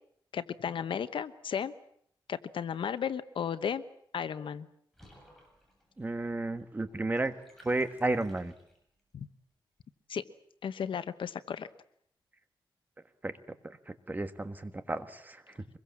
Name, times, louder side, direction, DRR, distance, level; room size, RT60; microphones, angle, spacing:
voice 1, 0.3-1.7 2.3-3.8 4.1-4.7 9.1-9.3 10.1-10.2 10.6-11.7, left 7 dB, 85° left, 13 dB, 1.1 m, -34 dB
Water / Bathtub (filling or washing), 4.9-9.0, equal, 5° left, 7.8 m, -60 dB
voice 2, 6.0-8.5 13.2-13.4 13.6-15.7, right 2 dB, 20° right, 9 dB, 1.6 m, -33 dB
25.0 x 22.0 x 7.4 m, 0.67 s
wide cardioid pair, 130°, 8 cm